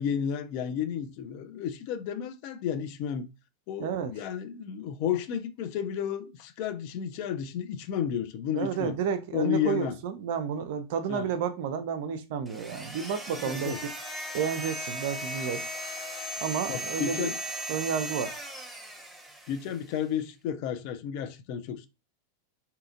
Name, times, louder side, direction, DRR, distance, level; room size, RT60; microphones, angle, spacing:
voice 1, 0.0-3.3 3.7-9.0 9.3-10.0 11.1-11.3 13.4-13.8 16.7-17.4 19.5-21.9, left 9 dB, 45° left, 0.4 m, -32 dB
voice 2, 3.8-4.1 8.5-13.7 14.3-15.6 16.4-17.3 17.7-18.3, right 7 dB, 50° right, 0.4 m, -31 dB
sound 1, 12.5-19.8, right 1 dB, 5° right, 0.7 m, -37 dB
2.7 x 2.4 x 2.5 m
figure-of-eight pair, 90°, 0 cm